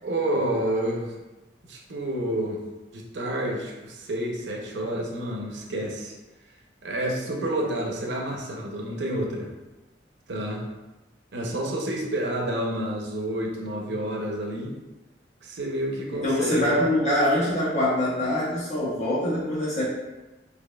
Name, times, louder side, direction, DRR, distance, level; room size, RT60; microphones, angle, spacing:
voice 1, 0.0-1.1 1.7-2.6 2.9-6.1 6.8-9.5 10.3-10.6 11.3-14.7 15.4-16.8, right 1 dB, 90° right, 0 dB, 0.6 m, -29 dB
voice 2, 16.1-19.8, left 1 dB, 40° left, -9 dB, 1.2 m, -24 dB
4.1 x 2.8 x 2.3 m, 1.1 s
head